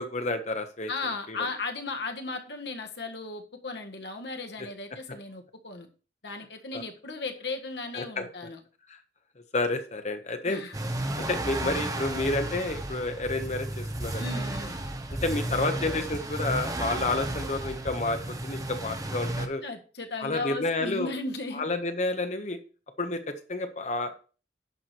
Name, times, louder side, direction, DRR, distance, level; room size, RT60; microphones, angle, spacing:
voice 1, 0.0-0.9 1.3-1.4 6.7-6.8 7.9-8.3 8.9-9.0 9.5-10.6 11.2-14.2 15.2-19.6 20.2-21.1 21.5-22.6 23.0-24.1, left 2 dB, 40° left, 1.3 m, -30 dB
voice 2, 0.9-5.9 6.2-8.6 10.4-10.8 14.2-14.8 19.6-21.6, left 3 dB, 75° left, 1.7 m, -36 dB
sound 1, 10.7-19.5, right 1 dB, 20° right, 1.1 m, -33 dB
11.0 x 5.0 x 6.0 m
head